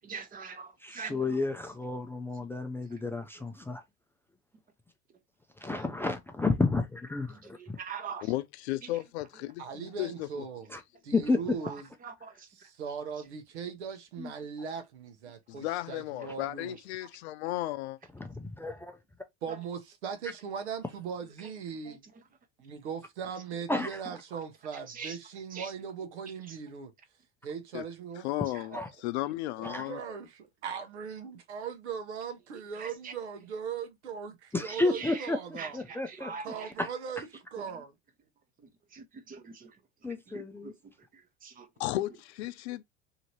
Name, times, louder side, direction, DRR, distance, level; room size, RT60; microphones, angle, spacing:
voice 1, 0.0-1.4 2.3-2.6 2.9-3.0 5.7-5.8 7.3-8.3 8.8-8.9 11.6-12.7 16.4-16.5 19.5-19.6 21.4-21.5 21.8-22.2 24.7-25.2 25.5-25.7 26.5-26.6 28.5-28.8 32.7-33.1 34.7-35.3 35.6-36.7 37.6-37.8 38.6-39.8 40.3-41.7, right 5 dB, 25° right, 0.8 m, -44 dB
voice 2, 0.8-3.8 5.6-7.8 10.7-10.8 11.1-11.4 14.2-14.3 18.2-18.9 23.7-23.9 28.7-28.9 29.6-29.9 34.5-35.4 35.7-36.3 36.8-36.9 40.0-40.7, left 3 dB, 5° left, 0.3 m, -31 dB
voice 3, 8.3-10.3 15.5-18.0 27.7-27.8 28.2-30.0 41.8-42.8, left 16 dB, 75° left, 0.5 m, -34 dB
voice 4, 9.6-10.7 11.0-11.9 12.6-16.8 19.4-22.1 22.6-26.9 27.4-28.3 29.6-35.8 36.4-37.9, right 6 dB, 90° right, 0.9 m, -39 dB
2.8 x 2.6 x 2.9 m
hypercardioid pair, 100°, 33 cm